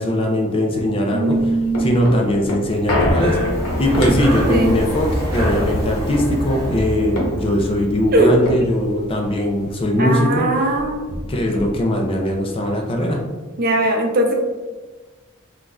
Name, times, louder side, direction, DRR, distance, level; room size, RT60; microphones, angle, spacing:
voice 1, 0.0-1.5 1.8-3.4 3.8-10.5 11.3-13.2, left 1 dB, 25° left, 1 dB, 0.4 m, -20 dB
voice 2, 1.1-2.0 4.5-4.8 8.1-8.3 10.0-11.0 13.6-14.3, right 1 dB, 45° right, 1 dB, 0.5 m, -19 dB
sound 1, 1.3-10.0 10.3-10.4 10.7-12.1 12.5-12.6, equal, 80° left, 0.9 m, -26 dB
Breathing, 2.8-7.8, equal, 15° right, 0.8 m, -27 dB
4.1 x 2.4 x 2.3 m, 1.3 s
head